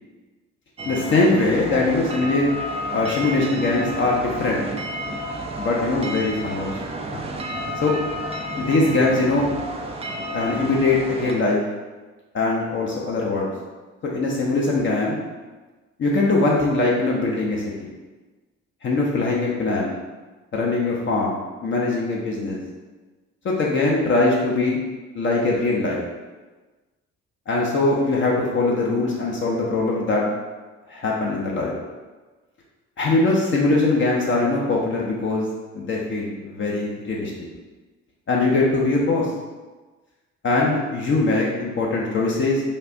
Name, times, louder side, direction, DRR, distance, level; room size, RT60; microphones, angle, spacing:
voice 1, 0.8-2.5 2.9-4.6 5.6-6.9 7.8-7.9 8.6-9.5 10.3-11.6 12.3-13.5 14.0-15.2 16.0-17.6 18.8-19.9 20.5-22.6 23.4-24.8 25.2-26.0 27.5-30.2 30.9-31.7 33.0-35.5 35.7-37.3 38.3-39.3 40.4-42.6, left 2 dB, 35° left, -3 dB, 0.6 m, -21 dB
sound 1, 0.8-11.3, right 1 dB, 20° right, 0.3 m, -31 dB
3.4 x 2.4 x 2.5 m, 1.2 s
figure-of-eight pair, 45°, 36 cm